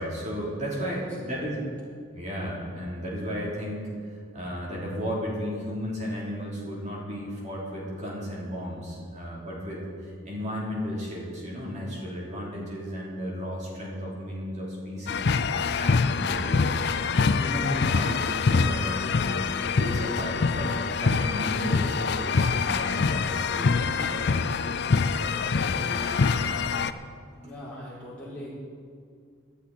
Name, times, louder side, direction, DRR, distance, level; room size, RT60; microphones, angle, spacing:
voice 1, 0.0-1.6 2.1-15.4 15.8-19.3 19.8-24.3 24.6-24.8 25.2-26.5 27.3-27.6, equal, 35° right, -4 dB, 3.3 m, -34 dB
voice 2, 0.7-1.4 27.4-28.5, left 1 dB, 5° left, -9 dB, 4.6 m, -41 dB
sound 1, 15.1-26.9, left 4 dB, 50° left, 0.4 m, -25 dB
18.5 x 11.5 x 4.2 m, 2.1 s
head